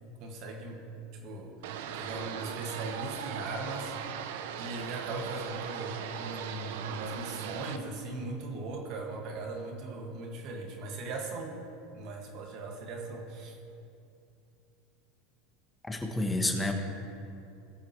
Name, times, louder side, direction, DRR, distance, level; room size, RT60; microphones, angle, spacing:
voice 1, 0.0-3.9 4.6-11.6 11.9-13.6, right 3 dB, 50° right, 1 dB, 2.0 m, -39 dB
sound 1, 1.6-7.8, right 8 dB, 75° right, 0.7 m, -39 dB
voice 2, 15.8-16.7, left 1 dB, 10° left, 3 dB, 1.1 m, -29 dB
20.0 x 7.4 x 3.2 m, 2.6 s
supercardioid pair, 135°, 0 cm